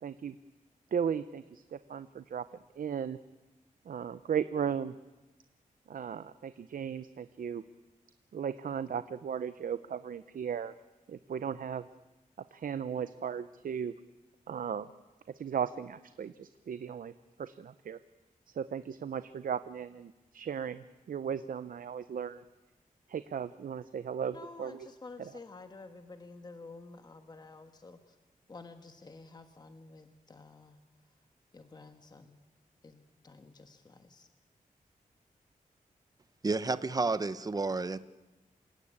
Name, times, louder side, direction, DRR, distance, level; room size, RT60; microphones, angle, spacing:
voice 1, 0.0-0.4 0.9-2.4 2.8-3.2 3.9-4.9 5.9-7.6 8.3-10.7 11.1-11.9 12.5-13.9 14.5-14.9 15.3-17.1 17.4-18.0 18.6-22.4 23.1-24.9, right 7 dB, 75° right, 13 dB, 0.7 m, -36 dB
voice 2, 24.3-28.2 28.5-30.8 31.5-32.4 32.8-34.3, left 3 dB, 30° left, 7 dB, 1.4 m, -51 dB
voice 3, 36.4-38.0, right 3 dB, 25° right, 14 dB, 0.8 m, -31 dB
28.0 x 17.0 x 8.8 m, 1.1 s
wide cardioid pair, 160°, 14 cm